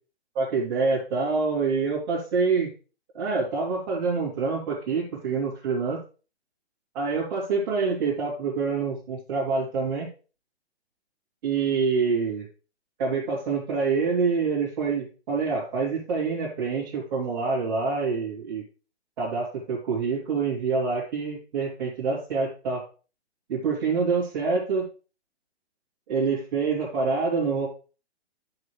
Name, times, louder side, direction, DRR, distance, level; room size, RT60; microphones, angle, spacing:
voice 1, 0.3-2.7 3.1-6.0 6.9-10.1 11.4-12.4 13.0-18.6 19.2-22.8 23.5-24.9 26.1-27.7, right 4 dB, 40° right, -8 dB, 2.9 m, -26 dB
10.5 x 5.0 x 3.2 m, 0.35 s
hypercardioid pair, 140°, 34 cm